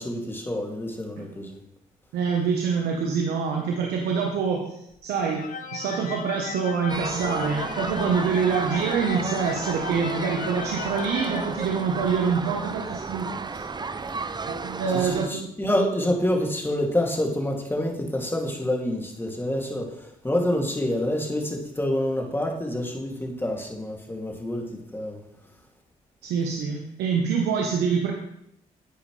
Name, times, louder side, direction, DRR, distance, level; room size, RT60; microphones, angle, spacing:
voice 1, 0.0-1.6 14.9-25.2, left 1 dB, 15° left, 0 dB, 2.7 m, -27 dB
voice 2, 2.1-5.4 5.7-13.5 14.5-15.5 26.2-28.1, right 6 dB, 80° right, 1 dB, 1.2 m, -26 dB
sound 1, 5.3-12.3, left 6 dB, 55° left, 0.9 m, -36 dB
sound 2, 6.9-15.3, right 4 dB, 25° right, 0.6 m, -33 dB
11.0 x 8.5 x 3.3 m, 0.78 s
supercardioid pair, 55°, 17 cm